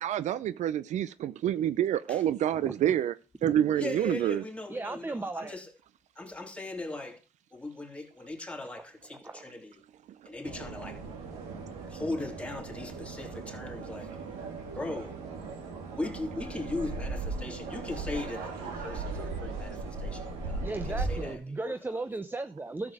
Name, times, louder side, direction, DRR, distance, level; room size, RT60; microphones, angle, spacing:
voice 1, 0.0-3.1 3.4-4.4, right 11 dB, 65° right, 0.6 m, -27 dB
voice 2, 2.5-3.0 3.4-3.6 4.7-5.6 9.1-9.4 20.6-22.9, right 2 dB, 15° right, 0.9 m, -36 dB
voice 3, 3.7-5.7 6.1-7.2 7.5-9.7 10.2-11.0 11.9-14.2 14.7-15.2 16.0-21.7, left 2 dB, 10° left, 3.2 m, -39 dB
sound 1, 10.4-21.4, right 3 dB, 85° right, 3.3 m, -38 dB
13.0 x 7.3 x 4.9 m
supercardioid pair, 65°, 13 cm